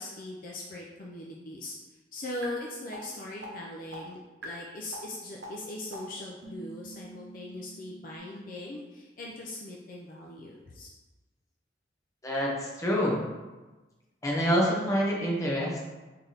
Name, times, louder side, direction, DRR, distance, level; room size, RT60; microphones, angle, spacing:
voice 1, 0.0-1.7 2.1-10.9, left 1 dB, 50° left, -2 dB, 0.4 m, -40 dB
sound 1, 2.4-2.5 2.9-3.0 3.4-3.5 3.9-4.0 4.4-4.5 4.9-5.0 5.4-5.5 5.9-6.0 6.4-8.2, right 3 dB, 65° right, 0.8 m, -45 dB
voice 2, 12.2-13.2 14.2-15.8, equal, 15° left, -4 dB, 0.7 m, -27 dB
3.3 x 2.8 x 3.8 m, 1.2 s
head